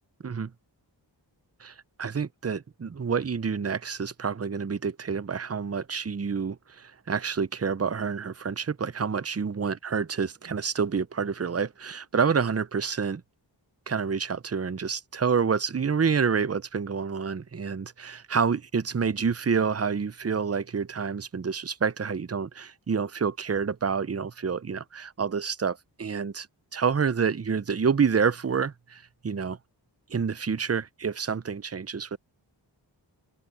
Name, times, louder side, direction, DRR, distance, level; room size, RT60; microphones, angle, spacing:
voice 1, 1.6-13.2 13.9-26.5 26.7-29.6 30.1-32.2, right 6 dB, 35° right, 0.7 m, -28 dB
open air
cardioid pair, 40°, 45 cm